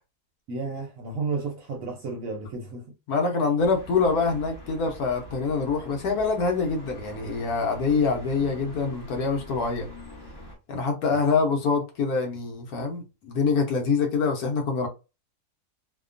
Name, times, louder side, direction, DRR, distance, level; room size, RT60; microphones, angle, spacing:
voice 1, 0.5-2.8, right 4 dB, 65° right, 0.8 m, -32 dB
voice 2, 3.1-9.9 10.7-14.9, left 4 dB, 65° left, 1.1 m, -25 dB
sound 1, 3.6-10.5, equal, 25° left, 0.6 m, -44 dB
2.8 x 2.2 x 2.4 m
omnidirectional pair, 1.8 m